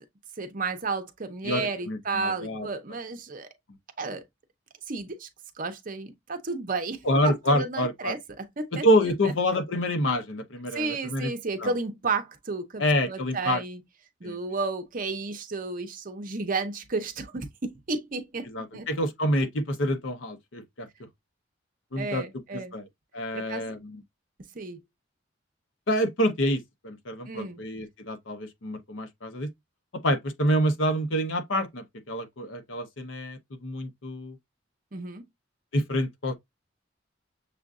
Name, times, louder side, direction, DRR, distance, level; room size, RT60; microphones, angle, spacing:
voice 1, 0.4-3.5 4.0-4.2 4.9-5.3 5.6-8.9 9.2-9.3 10.7-13.8 14.2-18.9 22.0-22.8 23.3-23.7 24.5-24.8 27.3-27.6 34.9-35.3, right 4 dB, 45° right, 0.7 m, -32 dB
voice 2, 1.4-2.7 7.0-8.1 8.8-11.3 11.6-11.7 12.8-13.6 14.2-14.4 18.5-20.9 21.9-22.2 22.7-22.8 23.1-24.0 25.9-29.5 30.0-34.4 35.7-36.4, equal, 85° left, 0.9 m, -27 dB
6.7 x 2.5 x 2.4 m
head